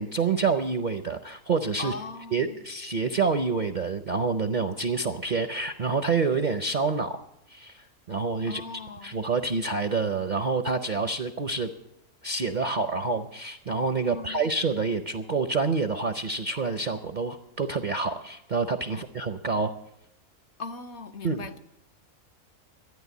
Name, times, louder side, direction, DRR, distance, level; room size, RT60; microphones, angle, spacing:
voice 1, 0.0-1.9 2.3-7.2 7.5-8.6 9.0-11.7 12.2-19.7 21.2-21.5, right 4 dB, 50° right, 8 dB, 0.6 m, -27 dB
voice 2, 1.8-2.6 8.4-9.2 14.1-14.5 18.9-19.0 20.6-21.6, left 4 dB, 60° left, 7 dB, 0.9 m, -39 dB
13.0 x 9.4 x 8.2 m, 0.82 s
omnidirectional pair, 1.5 m